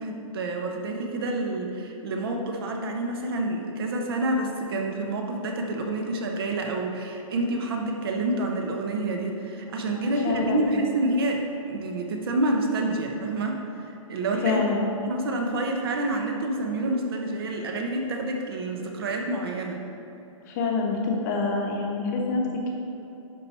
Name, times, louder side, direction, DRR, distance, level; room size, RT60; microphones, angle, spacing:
voice 1, 0.0-14.6 14.9-19.8, right 2 dB, 45° right, 2 dB, 0.9 m, -28 dB
voice 2, 9.9-10.7 14.4-14.9 20.5-22.7, left 4 dB, 30° left, 0 dB, 1.0 m, -27 dB
11.0 x 4.7 x 4.3 m, 2.9 s
hypercardioid pair, 170°, 17 cm